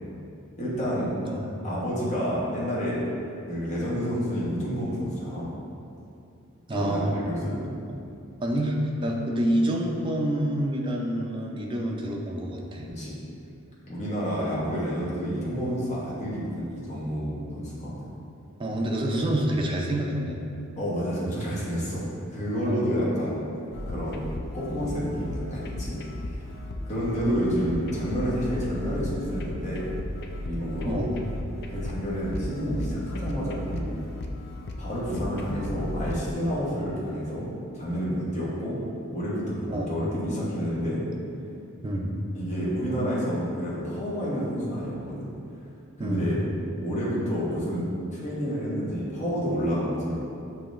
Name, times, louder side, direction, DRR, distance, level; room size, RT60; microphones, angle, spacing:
voice 1, 0.6-1.1 1.6-3.0 3.4-5.5 6.7-8.0 12.9-13.2 13.9-17.9 20.8-22.0 22.3-23.4 23.9-24.2 24.5-26.0 26.2-26.4 26.9-29.9 30.4-31.0 31.7-34.0 34.8-37.5 37.7-38.8 39.1-41.0 42.3-45.3 46.0-46.4 46.8-47.8 48.1-50.1, equal, 35° left, -7 dB, 1.1 m, -29 dB
voice 2, 6.7-7.2 8.4-12.9 18.6-20.4 22.7-22.9 30.8-31.2 39.7-39.9 41.8-42.2 46.0-46.3, right 1 dB, 25° right, 0 dB, 0.4 m, -27 dB
sound 1, 23.7-36.3, left 1 dB, 50° left, 0.4 m, -35 dB
7.0 x 2.9 x 2.5 m, 2.5 s
head